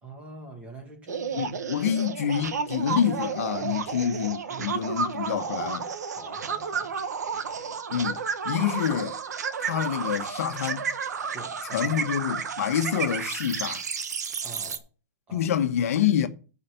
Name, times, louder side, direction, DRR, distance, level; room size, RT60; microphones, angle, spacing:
voice 1, 0.0-1.5 3.6-3.9 4.5-5.7 6.1-7.0 11.3-12.0 14.4-14.9 15.3-15.5, right 2 dB, 15° right, 2.0 m, -45 dB
sound 1, 1.1-14.8, right 6 dB, 85° right, 1.3 m, -32 dB
voice 2, 1.3-5.9 7.9-9.2 9.6-10.9 11.7-13.8 15.3-16.3, left 9 dB, 60° left, 1.1 m, -27 dB
10.5 x 4.9 x 6.8 m
hypercardioid pair, 160°, 9 cm